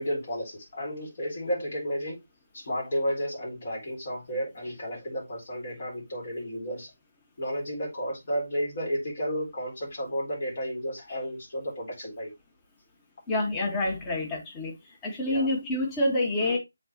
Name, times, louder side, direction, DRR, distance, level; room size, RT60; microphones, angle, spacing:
voice 1, 0.0-2.2 2.5-6.9 7.4-12.3 15.3-15.5 16.4-16.6, equal, 45° left, 3.6 m, -32 dB
voice 2, 13.3-14.7 15.0-16.6, left 1 dB, 15° left, 1.6 m, -27 dB
7.7 x 4.0 x 3.0 m
figure-of-eight pair, 150°, 0 cm